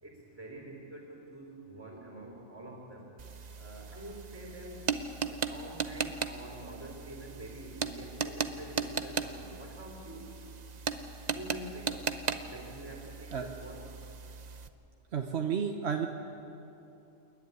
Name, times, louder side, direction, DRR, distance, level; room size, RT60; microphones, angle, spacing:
voice 1, 0.0-3.1 3.6-4.9 5.2-10.3 11.3-12.1 12.5-13.9, right 1 dB, 10° right, -1 dB, 3.8 m, -46 dB
sound 1, 3.2-14.7, right 5 dB, 40° right, 0.7 m, -37 dB
voice 2, 15.1-16.1, right 7 dB, 55° right, 3 dB, 1.2 m, -31 dB
29.0 x 11.0 x 9.5 m, 2.9 s
omnidirectional pair, 1.4 m